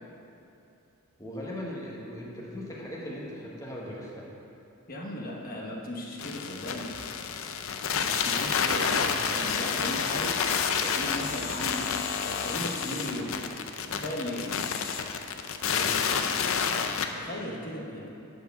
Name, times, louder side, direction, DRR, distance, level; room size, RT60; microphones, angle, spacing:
voice 1, 1.2-4.3 15.6-15.9, left 1 dB, 15° left, -4 dB, 1.4 m, -38 dB
voice 2, 4.9-6.9 8.0-10.4 10.8-11.8 12.2-13.4 13.9-14.5 17.1-18.1, left 1 dB, 40° left, -2 dB, 1.1 m, -36 dB
sound 1, 6.2-17.1, left 6 dB, 65° left, 0.5 m, -29 dB
sound 2, 6.8-12.8, equal, 15° right, 1.5 m, -54 dB
10.0 x 4.6 x 6.8 m, 2.9 s
head